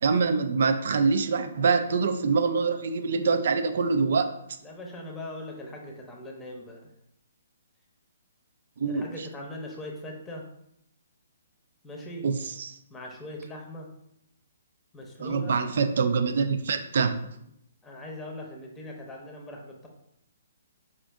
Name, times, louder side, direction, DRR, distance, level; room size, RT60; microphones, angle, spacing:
voice 1, 0.0-4.3 8.8-9.3 12.2-12.8 15.2-17.3, right 5 dB, 60° right, 8 dB, 0.4 m, -25 dB
voice 2, 4.6-6.9 8.9-10.4 11.8-12.3 12.9-13.9 14.9-15.6 17.8-19.9, left 1 dB, 10° left, 0 dB, 0.8 m, -40 dB
5.1 x 2.5 x 3.5 m, 0.76 s
figure-of-eight pair, 130°, 0 cm